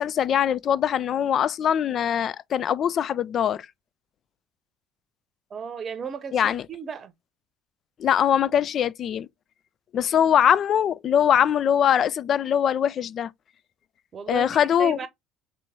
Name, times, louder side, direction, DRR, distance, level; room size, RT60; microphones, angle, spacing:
voice 1, 0.0-3.7 6.3-6.6 8.0-9.3 9.9-13.3 14.3-15.0, left 9 dB, 45° left, 0.3 m, -22 dB
voice 2, 5.5-7.1 14.1-15.1, right 6 dB, 40° right, 0.8 m, -35 dB
4.1 x 3.3 x 3.3 m
figure-of-eight pair, 60°, 0 cm